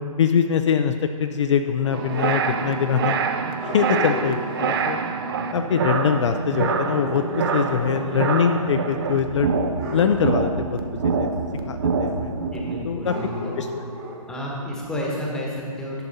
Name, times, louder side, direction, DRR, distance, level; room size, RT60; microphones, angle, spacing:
voice 1, 0.2-3.2 3.7-5.0 5.5-7.2 7.5-9.6 9.9-10.8 11.0-11.3 11.6-12.3 12.8-13.1 13.6-13.7, left 7 dB, 55° left, 7 dB, 0.4 m, -23 dB
sound 1, 1.8-3.3 3.6-4.8 6.6-8.6 8.9-9.2 9.8-10.2 13.0-14.3, left 1 dB, 25° right, 1.2 m, -34 dB
sound 2, 1.9-12.8, right 5 dB, 40° right, 0.6 m, -26 dB
voice 2, 12.5-13.6 14.3-16.0, equal, 5° left, -3 dB, 1.1 m, -30 dB
11.0 x 6.5 x 4.1 m, 2.1 s
hypercardioid pair, 150°, 19 cm